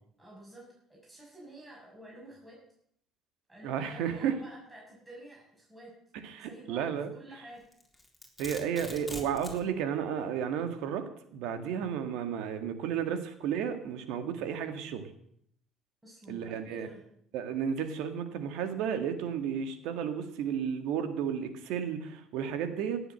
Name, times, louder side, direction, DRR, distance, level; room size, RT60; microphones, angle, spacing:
voice 1, 0.2-2.6 3.5-5.9 6.4-6.9 7.2-7.6 16.0-17.0, right 1 dB, 15° right, -4 dB, 6.6 m, -50 dB
voice 2, 3.6-4.4 6.2-7.1 8.4-11.0 11.3-15.1 16.3-16.9 17.3-23.0, right 8 dB, 80° right, 8 dB, 1.9 m, -33 dB
Domestic sounds home sounds, 7.7-9.6, equal, 5° left, 3.7 m, -43 dB
17.0 x 7.9 x 7.7 m, 0.69 s
supercardioid pair, 85°, 0 cm